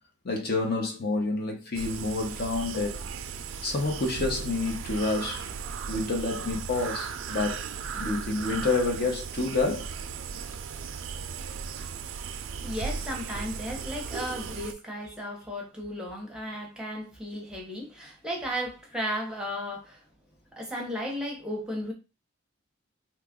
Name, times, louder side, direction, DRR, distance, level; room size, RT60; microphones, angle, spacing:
voice 1, 0.2-3.0 3.6-5.5 5.9-7.6 7.9-9.9, left 3 dB, 50° left, 0.8 m, -28 dB
sound 1, 1.7-14.7, right 6 dB, 85° right, 0.4 m, -36 dB
voice 2, 12.6-20.0 20.5-21.9, equal, 5° right, 0.7 m, -35 dB
2.9 x 2.3 x 3.5 m
head